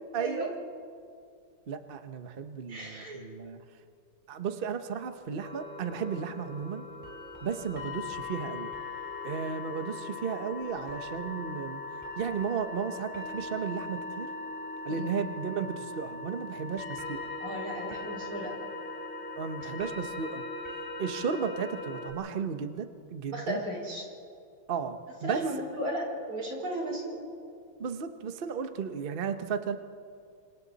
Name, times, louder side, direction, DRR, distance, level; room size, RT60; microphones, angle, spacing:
voice 1, 0.1-0.5 1.7-3.6 4.3-6.9 7.4-8.7 9.2-11.8 12.2-14.3 14.8-17.3 19.4-20.4 21.0-23.6 24.7-25.4 27.8-29.8, right 6 dB, 40° right, 8 dB, 0.8 m, -34 dB
voice 2, 2.7-3.3 14.9-15.2 17.4-18.5 23.3-24.0 25.2-27.2, right 1 dB, 85° right, -1 dB, 6.0 m, -35 dB
sound 1, 5.4-22.1, left 3 dB, 5° left, 5.0 m, -40 dB
29.5 x 26.5 x 4.1 m, 2.3 s
omnidirectional pair, 2.3 m